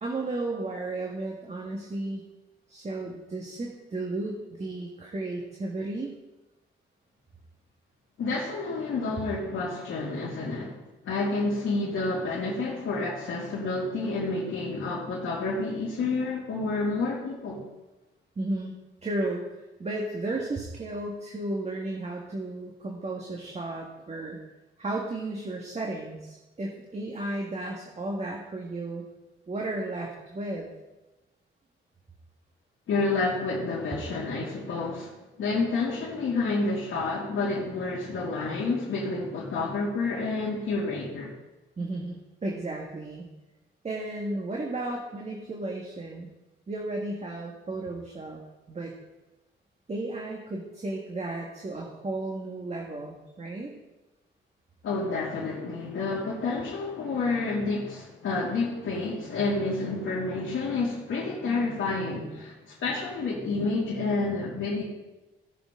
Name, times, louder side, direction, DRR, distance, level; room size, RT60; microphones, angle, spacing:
voice 1, 0.0-2.2 2.7-6.1 18.3-18.7 19.0-19.4 19.8-24.4 24.8-29.0 29.5-30.7 41.8-43.3 43.8-46.3 46.7-48.4 48.7-48.9 49.9-53.7, right 2 dB, 35° right, -1 dB, 1.7 m, -34 dB
voice 2, 8.2-10.8 11.0-17.6 32.9-41.3 54.8-64.8, left 3 dB, 80° left, -5 dB, 2.5 m, -29 dB
17.5 x 6.9 x 3.8 m, 1.1 s
cardioid pair, 110°, 21 cm